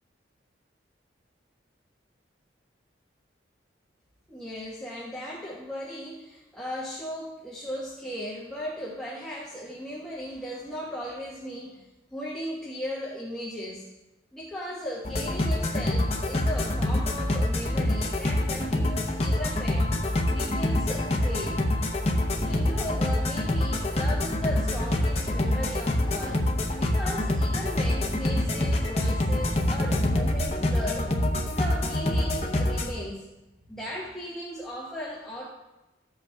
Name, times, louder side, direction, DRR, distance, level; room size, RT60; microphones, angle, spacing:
voice 1, 4.3-11.8 12.1-13.8 14.3-19.9 20.3-21.6 22.3-26.4 26.8-31.0 31.5-33.3 33.7-35.5, equal, 5° left, -7 dB, 1.2 m, -36 dB
sound 1, 15.0-32.9, left 1 dB, 35° left, 0.7 m, -26 dB
13.5 x 8.0 x 2.3 m, 1.0 s
head